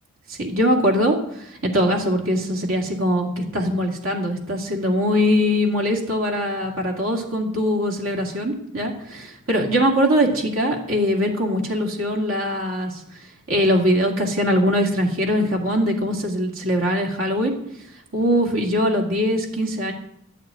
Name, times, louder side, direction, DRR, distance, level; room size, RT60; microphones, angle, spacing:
voice 1, 0.3-13.0 13.5-17.5 18.1-19.9, equal, 70° right, 0 dB, 2.2 m, -22 dB
11.5 x 6.5 x 9.1 m, 0.76 s
head